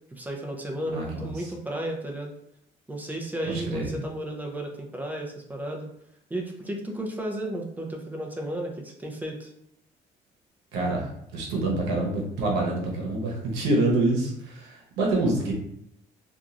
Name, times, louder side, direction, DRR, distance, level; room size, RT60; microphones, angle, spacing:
voice 1, 0.1-2.3 2.9-5.9 6.3-9.5, right 1 dB, 10° right, 1 dB, 0.5 m, -33 dB
voice 2, 0.9-1.3 3.5-3.9 10.7-15.5, right 2 dB, 90° right, -2 dB, 0.9 m, -26 dB
2.9 x 2.4 x 2.5 m, 0.74 s
cardioid pair, 110°, 17 cm